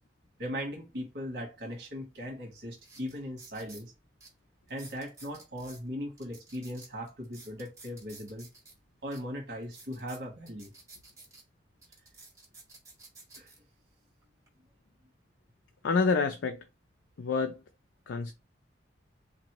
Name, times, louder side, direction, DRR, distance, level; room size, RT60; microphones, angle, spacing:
voice 1, 0.4-3.9 4.7-8.5 9.0-10.7 13.4-13.5, equal, 65° right, 1.2 m, -39 dB
sound 1, 2.1-2.2 2.7-3.9 4.2-4.3 4.7-5.8 6.2-8.7 9.1-9.2 9.6-11.4 11.8-13.6 14.2-14.5, right 3 dB, 20° right, 1.5 m, -52 dB
voice 2, 15.8-16.6 17.2-17.6 18.1-18.3, left 4 dB, 85° left, 0.4 m, -27 dB
3.9 x 2.6 x 2.9 m
head